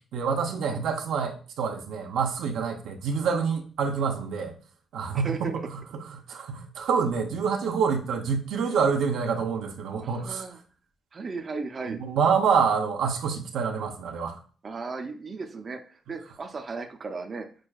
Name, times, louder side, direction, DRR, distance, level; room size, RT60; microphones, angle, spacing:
voice 1, 0.1-4.5 4.9-10.5 11.9-14.4, right 6 dB, 85° right, 3 dB, 0.6 m, -27 dB
voice 2, 5.2-5.6 10.0-10.6 11.1-12.0 14.6-17.5, right 4 dB, 35° right, 4 dB, 0.4 m, -36 dB
6.1 x 2.2 x 2.3 m, 0.39 s
cardioid pair, 135°, 0 cm